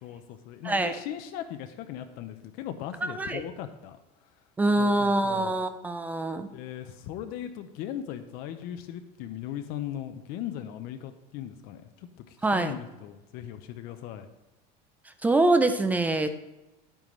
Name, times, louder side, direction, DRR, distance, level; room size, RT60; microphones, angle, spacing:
voice 1, 0.0-4.0 4.8-5.5 6.4-14.3, left 11 dB, 50° left, 8 dB, 0.7 m, -38 dB
voice 2, 0.6-1.0 3.0-3.4 4.6-6.5 12.4-12.7 15.2-16.3, right 2 dB, 10° right, 9 dB, 0.4 m, -24 dB
10.5 x 9.0 x 3.2 m, 0.99 s
cardioid pair, 175°, 19 cm